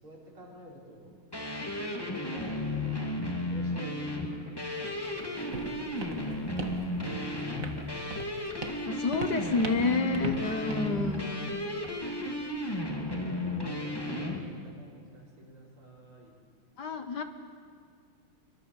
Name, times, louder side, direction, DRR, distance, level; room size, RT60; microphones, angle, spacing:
voice 1, 0.0-1.1 2.3-2.9 3.3-4.6 5.1-6.7 8.5-9.4 10.2-11.5 13.0-16.3, right 1 dB, 75° right, -3 dB, 5.7 m, -50 dB
sound 1, 1.3-14.4, left 1 dB, 10° left, 2.5 m, -34 dB
Walk footsteps, 4.8-12.8, right 4 dB, 40° right, 1.9 m, -42 dB
voice 2, 8.9-11.4 16.8-17.2, left 4 dB, 55° left, 7 dB, 1.7 m, -29 dB
27.0 x 23.0 x 7.1 m, 2.1 s
omnidirectional pair, 2.3 m